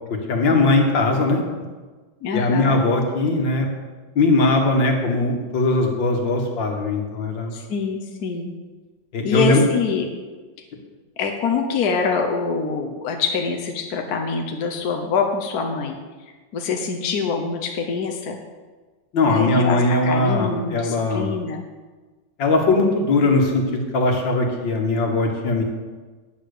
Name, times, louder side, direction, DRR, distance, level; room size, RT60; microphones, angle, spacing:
voice 1, 0.3-1.4 2.3-3.7 4.2-7.5 9.1-9.6 19.1-21.3 22.4-25.6, left 2 dB, 80° left, 2 dB, 2.3 m, -20 dB
voice 2, 2.2-2.8 7.5-8.5 9.2-10.1 11.2-16.0 16.5-18.4 19.3-21.6, left 5 dB, 60° left, 3 dB, 1.4 m, -25 dB
8.9 x 8.7 x 6.7 m, 1.3 s
omnidirectional pair, 2.0 m